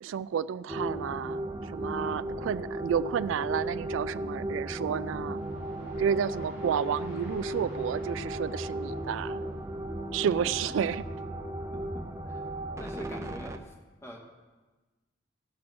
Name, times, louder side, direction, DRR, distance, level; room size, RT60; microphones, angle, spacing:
voice 1, 0.0-5.4 6.0-9.4 10.1-11.1, right 8 dB, 85° right, 16 dB, 0.3 m, -31 dB
sound 1, 0.7-13.6, right 1 dB, 15° right, 0.6 m, -35 dB
sound 2, 5.3-12.8, left 1 dB, 35° left, 2.9 m, -53 dB
voice 2, 11.7-12.0 12.8-13.6 14.0-14.2, equal, 15° left, -1 dB, 2.0 m, -42 dB
17.0 x 6.1 x 6.1 m, 1.2 s
head